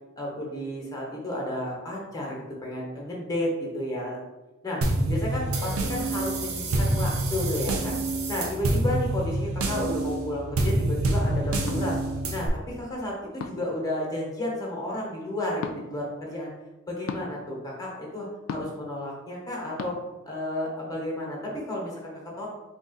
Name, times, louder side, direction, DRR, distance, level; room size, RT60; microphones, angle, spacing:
voice 1, 0.2-4.2 4.6-4.8 5.1-7.9 8.3-12.0 12.3-16.5 16.9-20.0 20.2-22.5, left 1 dB, 15° left, -3 dB, 1.0 m, -32 dB
sound 1, 4.8-12.5, right 1 dB, 70° right, 0.6 m, -27 dB
sound 2, 11.7-11.8 13.4-13.7 15.6-15.8 17.1-17.3 18.5-18.8 19.8-19.9, left 5 dB, 65° left, 0.3 m, -34 dB
3.6 x 2.4 x 3.9 m, 1.1 s
head